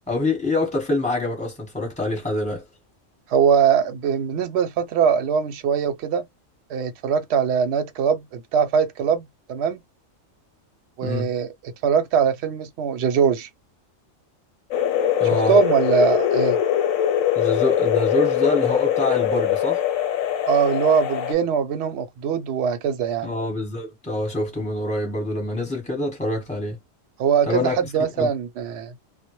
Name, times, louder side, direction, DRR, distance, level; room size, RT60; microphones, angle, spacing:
voice 1, 0.1-2.6 11.0-11.3 15.2-15.6 17.3-19.9 23.2-26.8 27.5-27.8 28.2-28.3, left 2 dB, 5° left, 0.9 m, -25 dB
voice 2, 3.3-6.2 6.7-9.8 11.0-11.5 11.8-13.5 15.5-16.6 20.5-23.3 27.2-28.9, right 7 dB, 65° right, 0.8 m, -21 dB
sound 1, 14.7-21.3, left 10 dB, 90° left, 1.1 m, -22 dB
2.1 x 2.1 x 2.9 m
omnidirectional pair, 1.3 m